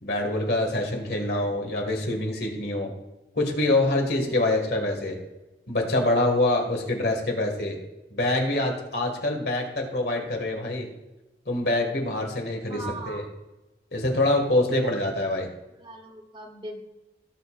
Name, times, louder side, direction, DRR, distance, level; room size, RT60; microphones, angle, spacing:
voice 1, 0.0-2.9 3.3-5.2 5.7-7.8 8.1-10.9 11.5-13.2 13.9-15.5, left 2 dB, 60° left, 2 dB, 1.9 m, -25 dB
voice 2, 12.7-13.2 14.7-14.9 15.8-16.8, right 1 dB, 25° right, 3 dB, 1.0 m, -37 dB
18.0 x 6.7 x 2.5 m, 1.1 s
head